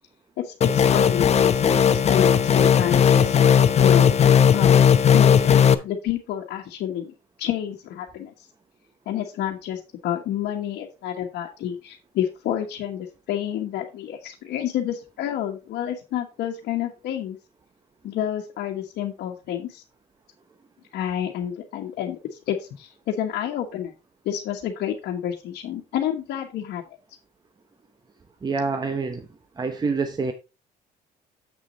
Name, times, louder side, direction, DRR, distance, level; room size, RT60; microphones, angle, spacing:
voice 1, 0.4-3.4 3.8-4.1 4.5-4.8 5.1-8.5 9.1-17.4 18.0-19.8 20.9-22.2 22.5-23.9 24.2-26.8, left 10 dB, 75° left, 1.3 m, -29 dB
sound 1, 0.6-5.7, left 8 dB, 40° left, 0.7 m, -16 dB
voice 2, 28.4-29.2 29.6-30.3, right 4 dB, 25° right, 0.9 m, -26 dB
7.5 x 6.4 x 3.9 m
cardioid pair, 110°, 17 cm